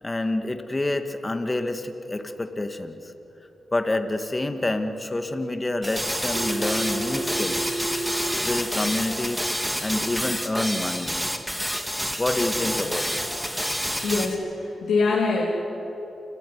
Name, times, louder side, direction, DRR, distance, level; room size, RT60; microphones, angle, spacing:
voice 1, 0.0-3.0 3.7-7.8 8.4-9.5 9.8-11.2 12.2-13.2, left 2 dB, 30° left, 7 dB, 2.1 m, -28 dB
sound 1, 5.8-14.3, equal, ahead, 2.5 m, -28 dB
Telephone, 6.3-8.3, right 2 dB, 60° right, 1.3 m, -31 dB
voice 2, 14.0-15.4, left 4 dB, 80° left, -4 dB, 3.2 m, -24 dB
28.5 x 15.0 x 9.6 m, 2.9 s
supercardioid pair, 45°, 0 cm